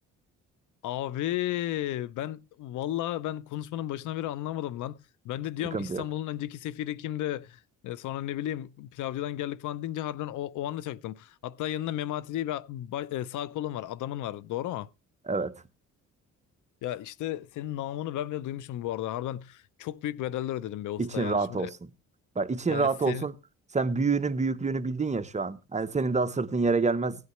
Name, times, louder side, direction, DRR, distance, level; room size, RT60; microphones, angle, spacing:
voice 1, 0.8-5.0 5.2-14.9 16.8-21.7 22.7-23.3, left 13 dB, 80° left, 0.6 m, -33 dB
voice 2, 5.7-6.0 15.3-15.6 21.0-21.7 22.3-23.3 23.7-27.3, right 4 dB, 25° right, 1.0 m, -27 dB
16.5 x 9.6 x 3.2 m
cardioid pair, 90°, 30 cm